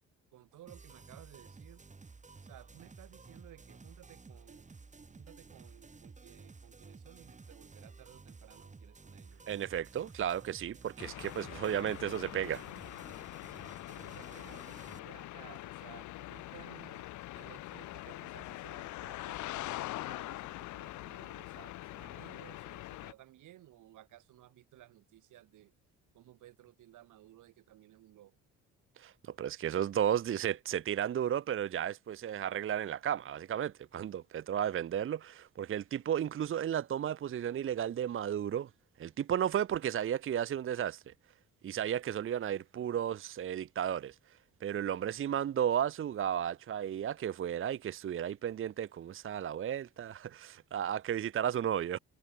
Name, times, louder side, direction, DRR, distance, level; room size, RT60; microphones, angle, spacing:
voice 1, 0.3-1.8 2.4-4.7 5.1-9.7 14.0-17.0 17.3-25.7 26.1-28.4, right 14 dB, 85° right, 7.8 m, -57 dB
sound 1, 0.7-15.0, right 4 dB, 25° right, 2.3 m, -54 dB
voice 2, 9.5-12.6 29.0-38.7 39.0-41.1 41.6-44.2 44.6-52.0, right 10 dB, 45° right, 0.6 m, -34 dB
sound 2, 11.0-23.1, left 17 dB, 75° left, 0.5 m, -43 dB
cardioid pair, 90°, 30 cm